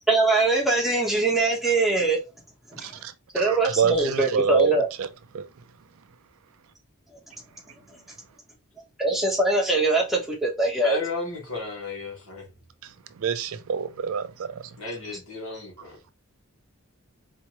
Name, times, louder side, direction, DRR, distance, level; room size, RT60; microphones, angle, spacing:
voice 1, 0.1-2.2 2.7-3.0 3.3-4.9 9.0-11.0, right 3 dB, ahead, 1.1 m, -22 dB
voice 2, 2.8-4.7 5.0-5.1 5.3-5.4 13.2-14.5, right 6 dB, 65° right, 0.4 m, -26 dB
voice 3, 10.8-12.5 14.8-16.0, left 3 dB, 65° left, 2.1 m, -33 dB
4.3 x 3.0 x 2.9 m
head